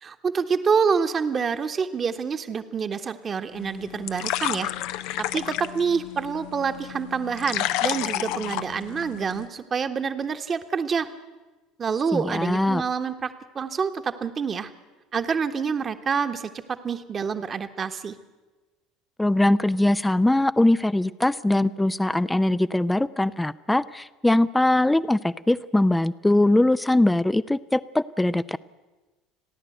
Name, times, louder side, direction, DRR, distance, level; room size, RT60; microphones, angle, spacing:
voice 1, 0.0-4.7 5.2-11.1 11.8-14.7 15.1-18.1, right 6 dB, 35° right, 8 dB, 1.3 m, -27 dB
sound 1, 3.5-9.5, left 14 dB, 65° left, 0.6 m, -31 dB
voice 2, 12.1-12.8 19.2-28.6, left 1 dB, 10° left, 16 dB, 0.6 m, -21 dB
30.0 x 11.0 x 7.9 m, 1.2 s
hypercardioid pair, 70°, 0 cm